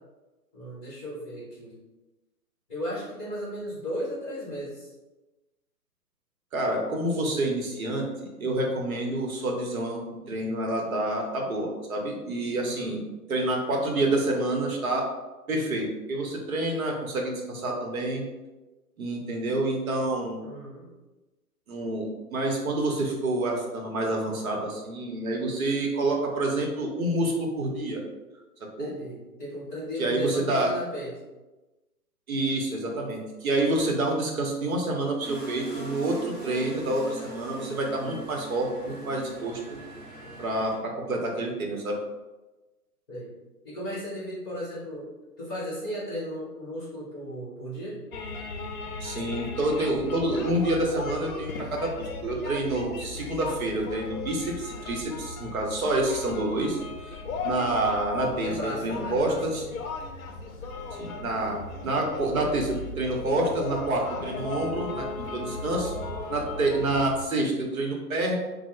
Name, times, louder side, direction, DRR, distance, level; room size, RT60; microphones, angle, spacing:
voice 1, 0.5-1.7 2.7-4.9 12.6-13.0 20.4-20.9 28.8-31.1 43.1-43.3 43.6-45.1 45.4-48.0 58.2-59.7, equal, 15° left, -9 dB, 1.0 m, -35 dB
voice 2, 6.5-13.0 13.3-15.0 15.5-18.2 19.0-20.4 21.7-28.0 28.8-28.9 30.0-30.7 32.3-39.8 40.4-42.0 49.0-57.2 57.4-59.6 60.9-65.9 66.3-68.4, right 2 dB, 60° right, 0 dB, 0.8 m, -28 dB
sound 1, 35.2-40.7, right 1 dB, 15° right, 0.7 m, -41 dB
sound 2, 48.1-67.2, left 3 dB, 60° left, 0.5 m, -37 dB
3.1 x 2.1 x 3.0 m, 1.1 s
hypercardioid pair, 160°, 47 cm